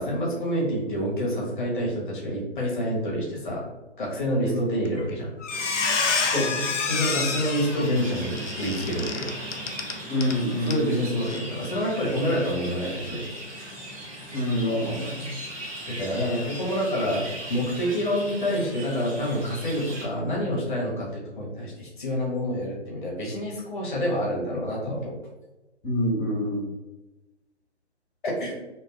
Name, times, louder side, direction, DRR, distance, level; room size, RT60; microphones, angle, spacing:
voice 1, 0.0-3.6 4.0-5.3 6.9-9.3 10.6-13.2 15.9-17.2 17.5-25.2 28.2-28.5, equal, 45° left, -3 dB, 0.9 m, -27 dB
Squeak, 4.9-5.1 5.4-10.4 10.7-10.8 11.2-11.4, left 5 dB, 80° left, 0.5 m, -28 dB
sound 1, 5.5-20.1, right 1 dB, 30° right, 0.8 m, -38 dB
voice 2, 6.3-6.7 10.1-10.9 14.3-15.3 25.8-26.7, left 1 dB, 20° left, -7 dB, 1.2 m, -27 dB
2.5 x 2.2 x 2.3 m, 1.1 s
figure-of-eight pair, 145°, 36 cm